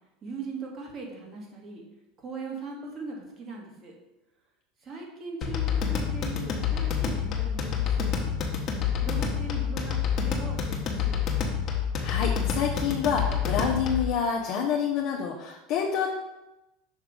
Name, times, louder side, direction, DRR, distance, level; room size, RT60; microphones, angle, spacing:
voice 1, 0.2-1.8 2.2-3.9 4.8-8.6 9.0-11.4, right 3 dB, 40° right, -1 dB, 1.9 m, -40 dB
sound 1, 5.4-14.1, left 7 dB, 45° left, 1.2 m, -28 dB
voice 2, 12.0-16.1, left 7 dB, 60° left, -2 dB, 0.8 m, -27 dB
6.4 x 3.4 x 5.0 m, 0.96 s
hypercardioid pair, 100°, 0 cm